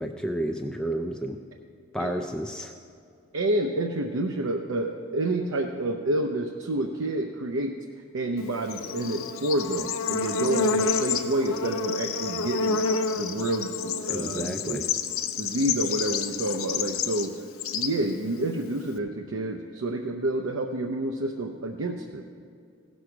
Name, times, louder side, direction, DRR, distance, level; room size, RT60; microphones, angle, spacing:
voice 1, 0.0-1.4 1.9-2.7 14.1-14.9, right 1 dB, 5° left, 3 dB, 0.3 m, -31 dB
voice 2, 3.3-7.7 8.1-12.8 13.1-13.7 14.1-14.8 15.4-17.3 17.7-22.2, right 1 dB, 70° right, 3 dB, 0.6 m, -28 dB
Bird / Insect, 8.4-19.0, left 5 dB, 70° left, 0.6 m, -29 dB
16.0 x 6.2 x 6.0 m, 2.4 s
head